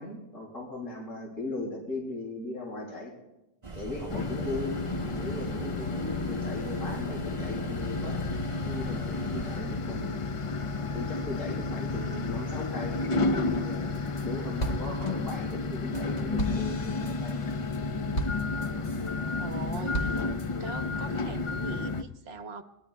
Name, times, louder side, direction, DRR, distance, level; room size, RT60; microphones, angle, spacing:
voice 1, 0.0-3.1 3.7-4.8 5.1-8.2 8.7-10.2 10.8-17.5, left 2 dB, 80° left, -1 dB, 3.1 m, -38 dB
sound 1, 3.6-9.6, right 3 dB, 25° right, 0.9 m, -41 dB
sound 2, 4.1-22.0, left 3 dB, 60° left, 0.3 m, -31 dB
sound 3, 13.7-14.3 14.6-19.1 19.5-20.5, equal, 35° left, 1.3 m, -36 dB
voice 2, 19.4-20.3 20.6-22.6, right 4 dB, 55° right, 9 dB, 1.1 m, -41 dB
22.5 x 20.5 x 2.3 m, 0.97 s
omnidirectional pair, 1.3 m